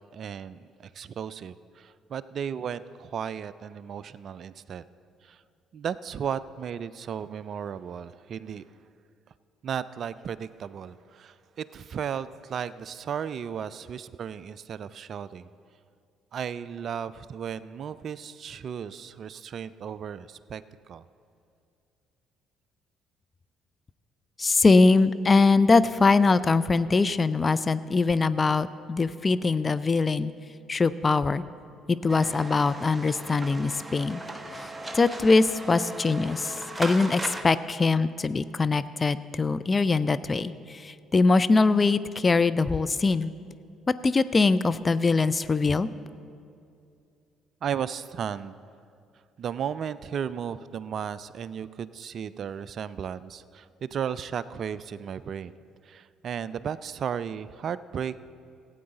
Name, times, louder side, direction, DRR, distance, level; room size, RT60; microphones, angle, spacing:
voice 1, 0.1-4.8 5.2-5.4 5.7-8.6 9.6-15.5 16.3-20.6 20.9-21.1 47.6-48.6 49.4-55.5 55.8-58.2, right 8 dB, 50° right, 17 dB, 0.3 m, -35 dB
voice 2, 24.4-30.3 30.7-31.4 31.9-34.2 34.9-43.3 44.0-45.9, left 3 dB, 30° left, 14 dB, 0.4 m, -22 dB
sound 1, 32.1-37.4, right 1 dB, 15° right, 1.0 m, -37 dB
16.0 x 8.7 x 3.9 m, 2.5 s
figure-of-eight pair, 50°, 0 cm